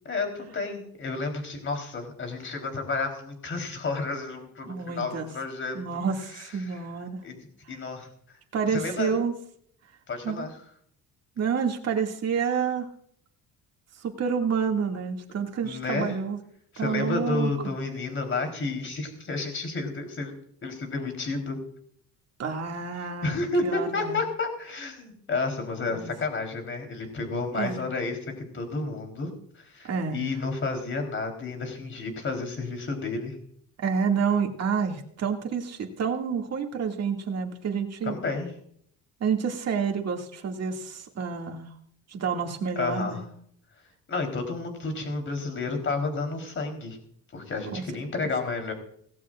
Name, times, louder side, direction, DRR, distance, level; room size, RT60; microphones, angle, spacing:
voice 1, 0.1-5.8 6.3-6.8 7.2-8.4 8.6-9.1 10.1-10.6 15.6-16.2 16.7-20.3 20.6-21.6 23.2-28.2 28.5-29.3 29.6-33.4 38.0-38.5 42.8-43.2 44.1-47.0 47.3-48.7, left 3 dB, 35° left, 4 dB, 3.9 m, -31 dB
voice 2, 4.7-5.3 5.7-7.2 8.5-9.3 10.2-10.5 11.4-12.9 14.0-16.4 16.8-17.5 22.4-24.2 25.9-26.1 27.5-27.8 29.8-30.3 33.8-38.1 39.2-41.7 42.1-43.3 47.7-47.8, right 6 dB, 45° right, 2 dB, 2.4 m, -29 dB
18.0 x 17.0 x 2.5 m, 0.65 s
cardioid pair, 130°, 36 cm